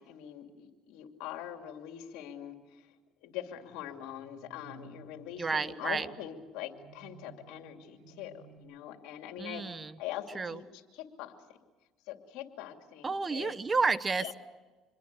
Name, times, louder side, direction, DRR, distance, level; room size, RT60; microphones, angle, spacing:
voice 1, 0.0-2.9 3.2-11.6 12.0-13.6 14.2-14.3, left 11 dB, 80° left, 5 dB, 2.6 m, -43 dB
sound 1, 3.3-8.6, right 6 dB, 90° right, 3.4 m, -57 dB
voice 2, 5.4-6.1 9.4-9.9 10.3-10.6 13.0-14.4, right 4 dB, 25° right, 16 dB, 1.0 m, -31 dB
26.5 x 22.0 x 6.8 m, 1.3 s
supercardioid pair, 90°, 0 cm